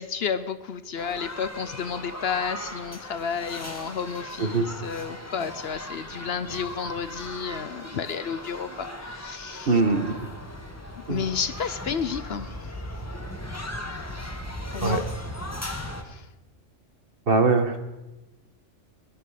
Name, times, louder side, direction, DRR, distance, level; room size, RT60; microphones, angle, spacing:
voice 1, 0.0-9.8 11.0-12.7 14.7-15.0 16.0-16.2, left 6 dB, 60° left, 13 dB, 0.8 m, -31 dB
sound 1, 1.0-16.0, left 1 dB, 15° left, 1.3 m, -38 dB
voice 2, 9.7-10.3 11.1-11.2 14.8-15.0 17.3-17.8, right 3 dB, 50° right, 7 dB, 1.5 m, -22 dB
20.5 x 12.0 x 5.0 m, 1.0 s
omnidirectional pair, 1.3 m